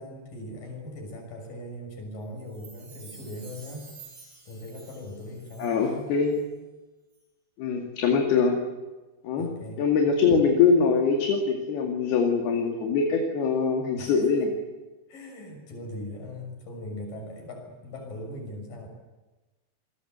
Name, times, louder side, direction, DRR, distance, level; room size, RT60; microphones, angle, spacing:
voice 1, 0.0-3.9 4.5-6.0 9.4-9.8 10.3-10.4 14.0-14.2 15.1-18.9, left 1 dB, 55° left, 3 dB, 8.0 m, -40 dB
Chime, 2.4-6.0 6.3-6.4, right 4 dB, 50° right, 9.3 m, -50 dB
voice 2, 5.6-6.4 7.6-8.6 9.2-9.5 9.8-14.6, left 5 dB, 70° left, 1 dB, 4.3 m, -23 dB
28.0 x 21.5 x 8.2 m, 1.2 s
omnidirectional pair, 4.7 m